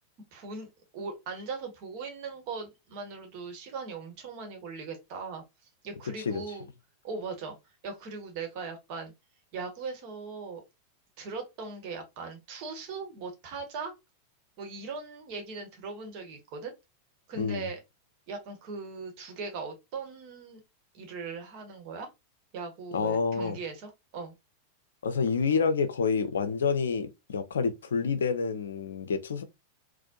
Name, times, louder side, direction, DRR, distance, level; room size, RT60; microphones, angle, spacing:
voice 1, 0.3-5.4 5.8-6.6 7.0-7.6 7.8-9.1 9.5-10.6 11.2-13.9 14.6-16.7 17.3-17.8 18.3-20.6 20.9-22.1 22.5-24.3, right 4 dB, 45° right, 1.2 m, -39 dB
voice 2, 17.4-17.7 22.9-23.6 25.0-29.4, left 5 dB, 65° left, 0.5 m, -28 dB
4.2 x 2.2 x 2.7 m
figure-of-eight pair, 90°, 0 cm